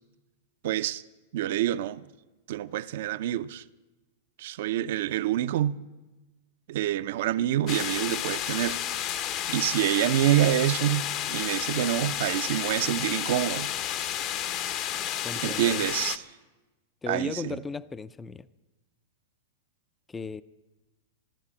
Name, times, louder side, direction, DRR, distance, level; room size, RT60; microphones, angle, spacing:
voice 1, 0.6-1.0 1.3-2.1 2.5-3.6 4.4-5.8 6.7-8.8 9.2-9.3 9.5-13.7 15.4-16.2 17.1-17.6, right 12 dB, 65° right, 0.6 m, -27 dB
sound 1, 7.7-16.2, left 11 dB, 40° left, 0.7 m, -31 dB
voice 2, 15.2-15.8 17.0-18.5 20.1-20.4, left 4 dB, 15° left, 0.4 m, -36 dB
13.5 x 12.0 x 8.5 m
hypercardioid pair, 130°, 0 cm